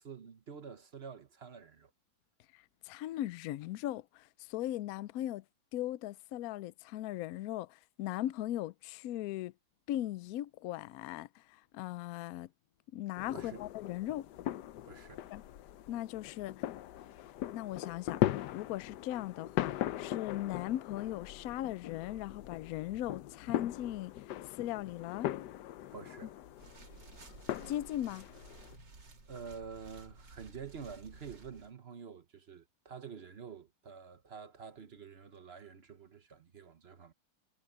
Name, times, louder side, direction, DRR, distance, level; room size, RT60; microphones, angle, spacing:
voice 1, 0.0-1.9 13.3-13.6 14.8-15.2 25.9-26.4 29.3-37.1, right 6 dB, 45° right, 0.9 m, -48 dB
voice 2, 2.5-5.4 5.7-9.5 9.9-12.5 12.9-14.3 15.3-15.4 15.9-16.7 17.5-18.2 18.5-24.1 24.6-25.3 27.7-28.3, left 13 dB, 90° left, 0.7 m, -38 dB
sound 1, 13.2-28.8, left 13 dB, 70° left, 1.2 m, -39 dB
sound 2, 26.5-31.7, right 3 dB, 65° right, 3.6 m, -54 dB
omnidirectional pair, 2.1 m